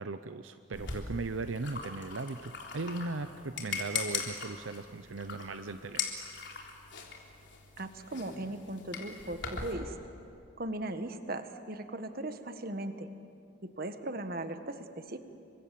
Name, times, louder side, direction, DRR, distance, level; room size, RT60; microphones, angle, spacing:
voice 1, 0.0-6.1, right 3 dB, 80° right, 10 dB, 0.7 m, -38 dB
sound 1, 0.7-9.7, left 5 dB, 60° left, 3.6 m, -40 dB
voice 2, 7.8-9.9 10.6-13.1 13.6-15.2, right 1 dB, 45° right, 8 dB, 1.5 m, -38 dB
29.5 x 24.5 x 7.6 m, 2.6 s
head